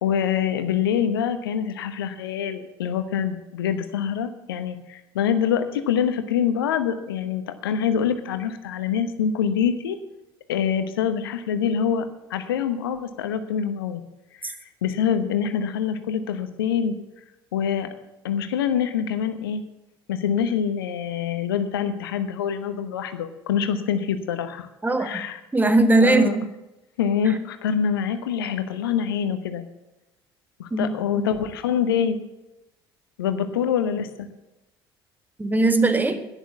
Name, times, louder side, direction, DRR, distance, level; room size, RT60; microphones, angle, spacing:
voice 1, 0.0-10.0 10.5-14.0 14.4-17.0 17.5-17.9 18.2-19.6 20.1-24.7 25.0-25.4 26.0-26.4 27.0-29.6 30.6-32.2 33.2-34.3, left 8 dB, 70° left, 10 dB, 1.1 m, -25 dB
voice 2, 24.8-25.2 25.5-26.5 27.2-27.3 30.7-30.9 35.4-36.3, right 2 dB, 15° right, 10 dB, 1.5 m, -20 dB
11.0 x 10.5 x 7.2 m, 0.99 s
figure-of-eight pair, 55°, 12 cm